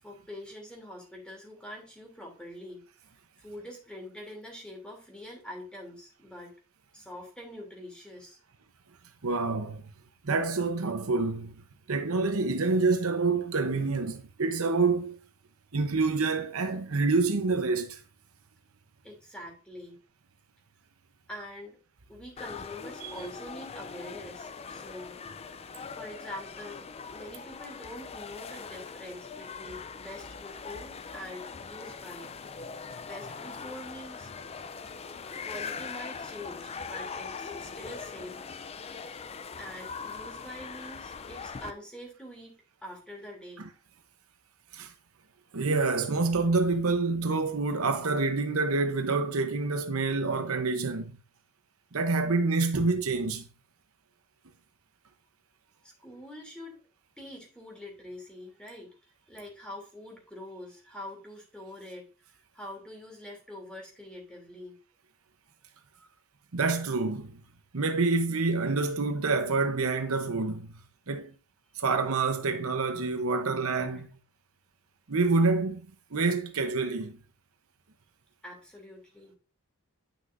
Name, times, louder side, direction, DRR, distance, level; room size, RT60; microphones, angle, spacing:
voice 1, 0.0-2.8 3.4-6.5 6.9-8.4 19.0-20.0 21.3-21.8 22.1-25.2 25.9-26.8 27.1-32.7 33.0-34.3 35.4-38.4 39.6-43.6 55.8-56.8 57.2-58.9 59.3-62.1 62.5-64.7 78.4-79.4, left 1 dB, 5° left, 2.9 m, -44 dB
voice 2, 9.2-9.8 10.2-11.6 11.9-15.2 15.7-18.0 23.0-23.1 43.6-43.7 44.7-44.9 45.5-51.2 51.9-53.5 66.5-67.4 67.7-71.3 71.8-74.1 75.1-75.8 76.1-77.2, right 3 dB, 65° right, 0.9 m, -27 dB
sound 1, 22.4-41.7, left 5 dB, 25° left, 0.4 m, -41 dB
9.8 x 6.2 x 2.6 m
head